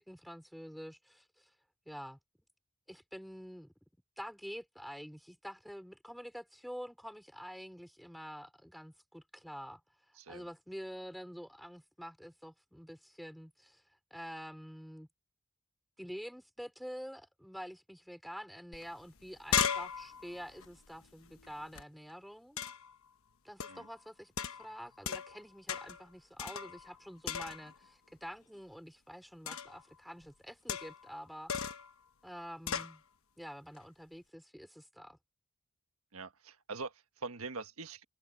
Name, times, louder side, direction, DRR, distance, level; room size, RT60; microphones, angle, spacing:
voice 1, 0.0-1.5 1.9-2.2 2.9-3.7 4.2-9.8 10.1-13.8 14.1-15.1 16.0-22.6 23.4-31.5 32.2-33.0 33.4-35.2, equal, ahead, 3.7 m, -47 dB
sound 1, 18.7-18.8 19.1-21.8 22.6-23.0 23.6-23.9 24.4-25.4 25.7-26.1 26.4-27.0 27.3-27.9 29.5-29.8 30.7-31.1 31.5-31.9 32.7-33.0, left 7 dB, 70° left, 1.2 m, -37 dB
voice 2, 36.1-38.0, right 4 dB, 80° right, 1.5 m, -43 dB
head